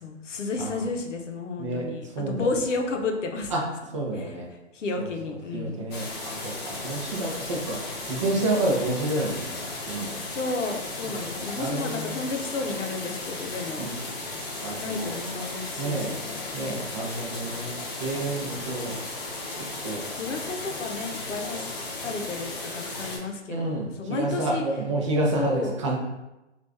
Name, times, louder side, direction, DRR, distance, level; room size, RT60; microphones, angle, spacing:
voice 1, 0.0-3.5 4.1-4.3 4.7-5.9 10.3-13.8 14.8-16.9 18.3-18.7 20.2-21.7 22.0-24.6 25.3-25.7, left 3 dB, 75° left, 3 dB, 0.8 m, -32 dB
voice 2, 1.6-2.5 3.5-3.6 3.9-4.5 5.0-5.1 5.5-10.1 11.0-12.2 13.8-13.9 14.6-15.1 15.8-16.2 16.5-19.0 19.6-20.0 23.5-26.0, right 2 dB, 25° right, -2 dB, 0.5 m, -29 dB
sound 1, 5.9-23.2, left 2 dB, 35° left, 0.8 m, -35 dB
3.1 x 2.4 x 3.3 m, 0.98 s
hypercardioid pair, 150°, 36 cm